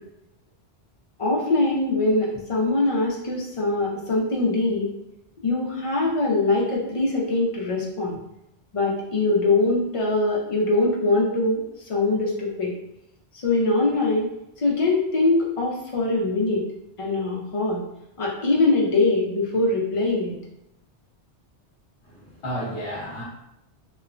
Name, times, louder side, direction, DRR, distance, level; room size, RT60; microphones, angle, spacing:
voice 1, 1.2-4.9 5.4-8.2 8.7-11.6 11.9-12.7 13.4-14.3 14.6-16.6 17.0-17.8 18.2-20.3, left 2 dB, 45° left, -3 dB, 0.4 m, -22 dB
voice 2, 22.1-23.2, equal, 60° left, -6 dB, 1.0 m, -32 dB
3.0 x 2.0 x 2.4 m, 0.84 s
omnidirectional pair, 1.1 m